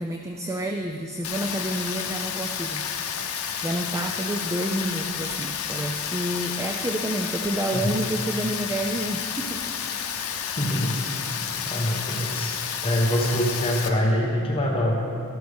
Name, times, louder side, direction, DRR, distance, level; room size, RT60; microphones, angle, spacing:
voice 1, 0.0-2.9 3.2-3.3 3.6-9.6, right 1 dB, 15° right, 3 dB, 0.4 m, -29 dB
Rain, 1.2-13.9, left 7 dB, 75° left, 0.9 m, -31 dB
voice 2, 10.4-11.3 11.7-15.0, equal, 25° left, -1 dB, 1.0 m, -25 dB
13.0 x 12.0 x 3.4 m, 2.5 s
head